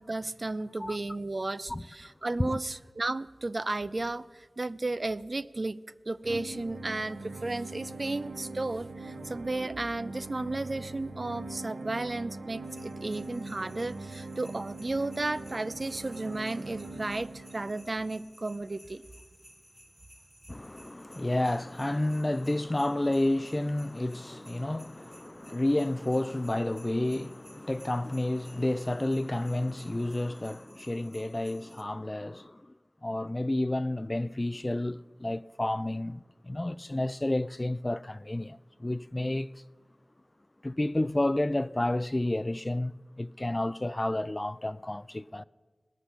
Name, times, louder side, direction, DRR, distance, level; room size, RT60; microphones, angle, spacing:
voice 1, 0.1-5.8 6.1-19.0, right 2 dB, 50° right, 0.4 m, -34 dB
sound 1, 6.2-18.2, right 2 dB, 90° right, 0.7 m, -42 dB
sound 2, 12.6-31.8, equal, ahead, 1.3 m, -58 dB
voice 2, 20.5-32.6 33.0-39.6 40.6-45.4, left 1 dB, 30° left, 0.3 m, -30 dB
19.5 x 6.6 x 6.2 m
wide cardioid pair, 45°, 0 cm